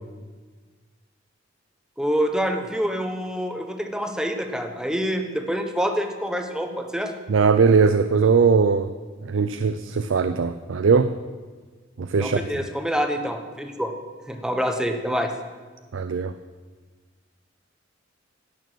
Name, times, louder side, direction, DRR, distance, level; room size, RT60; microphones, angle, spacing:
voice 1, 2.0-7.1 12.2-13.9 14.3-15.3, equal, 5° right, 5 dB, 1.0 m, -26 dB
voice 2, 7.3-8.9 9.2-11.1 12.0-12.4 15.9-16.3, right 5 dB, 80° right, 10 dB, 0.5 m, -20 dB
17.0 x 6.5 x 6.3 m, 1.4 s
head